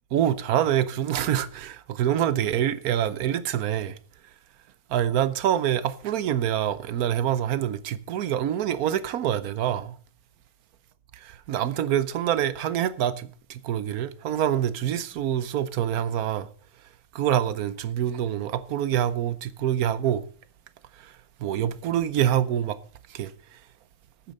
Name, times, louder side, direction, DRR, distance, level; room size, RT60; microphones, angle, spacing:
voice 1, 0.1-3.9 4.9-9.9 11.5-16.5 17.1-20.2 21.4-22.8 23.1-23.3, right 10 dB, 75° right, 1.2 m, -26 dB
11.5 x 9.0 x 5.3 m
omnidirectional pair, 1.6 m